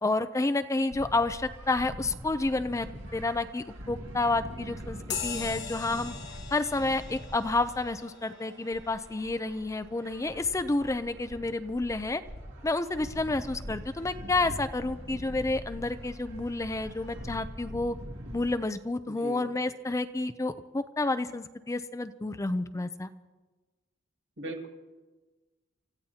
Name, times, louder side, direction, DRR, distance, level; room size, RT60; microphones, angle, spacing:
voice 1, 0.0-2.9 3.1-6.1 6.5-12.2 12.6-18.0 18.3-23.1, left 2 dB, 15° left, 11 dB, 0.4 m, -30 dB
sound 1, 0.9-18.5, equal, 85° right, 2.2 m, -43 dB
sound 2, 5.1-13.0, left 7 dB, 60° left, 1.1 m, -43 dB
voice 2, 19.1-19.5 24.4-24.7, right 1 dB, 70° right, 2 dB, 2.1 m, -39 dB
29.0 x 14.5 x 2.8 m, 1.3 s
head